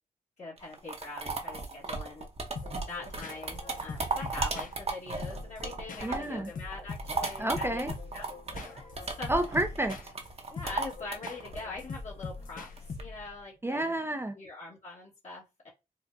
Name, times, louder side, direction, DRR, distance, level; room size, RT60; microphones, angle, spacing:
voice 1, 0.4-2.3 2.9-7.8 8.1-9.4 10.5-12.7 13.0-13.9 14.3-15.7, left 3 dB, 50° left, 1.4 m, -43 dB
sound 1, 0.6-6.4 6.7-13.0, right 3 dB, 45° right, 0.9 m, -36 dB
sound 2, 2.6-13.4, left 4 dB, 65° left, 0.6 m, -43 dB
voice 2, 6.0-6.5 7.4-7.9 9.3-10.0 13.6-14.4, right 1 dB, 15° right, 0.5 m, -30 dB
4.4 x 2.1 x 2.6 m
cardioid pair, 60°, 15 cm